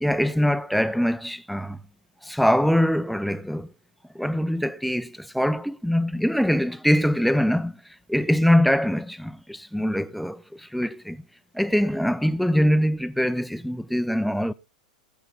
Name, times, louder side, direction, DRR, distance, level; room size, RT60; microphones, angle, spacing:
voice 1, 0.0-1.8 2.2-3.7 4.1-7.8 8.1-11.2 11.5-14.5, equal, ahead, 0.7 m, -23 dB
20.5 x 7.0 x 4.2 m
figure-of-eight pair, 95°, 4 cm